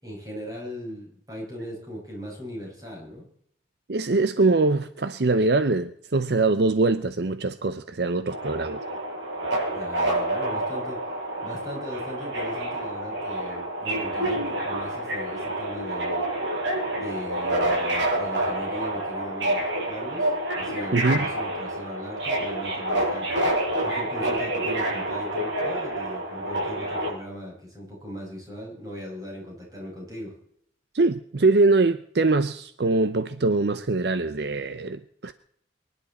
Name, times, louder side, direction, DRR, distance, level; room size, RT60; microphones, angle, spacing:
voice 1, 0.0-3.2 9.7-11.0 11.4-16.2 16.9-23.3 23.8-30.4, equal, 20° right, 6.5 m, -38 dB
voice 2, 3.9-8.8 20.9-21.3 30.9-35.3, right 3 dB, 60° right, 0.7 m, -23 dB
Subway metro underground, 8.3-27.1, right 1 dB, 80° right, 6.9 m, -28 dB
24.5 x 11.0 x 4.3 m
head